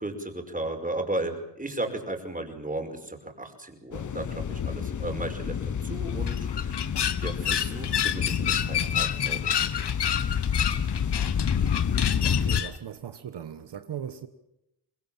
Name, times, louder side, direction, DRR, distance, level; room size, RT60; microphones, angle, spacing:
voice 1, 0.0-6.9 7.2-10.0 10.2-10.4, right 2 dB, 20° right, 5.4 m, -35 dB
sound 1, 3.9-12.6, left 7 dB, 45° left, 1.0 m, -29 dB
sound 2, 6.1-12.8, left 9 dB, 75° left, 1.5 m, -29 dB
voice 2, 12.2-14.3, right 9 dB, 75° right, 1.4 m, -38 dB
25.0 x 21.0 x 7.4 m
cardioid pair, 75°, 41 cm